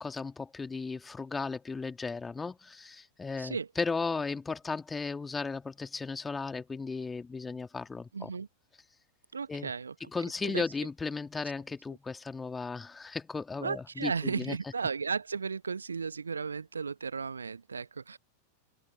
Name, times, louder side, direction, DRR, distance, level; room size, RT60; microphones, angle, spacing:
voice 1, 0.0-8.3 9.5-9.7 10.1-14.6, left 4 dB, 15° left, 2.4 m, -35 dB
voice 2, 3.4-3.7 8.1-8.5 9.3-10.1 10.4-10.6 13.6-18.2, right 5 dB, 75° right, 1.5 m, -35 dB
figure-of-eight pair, 90°, 0 cm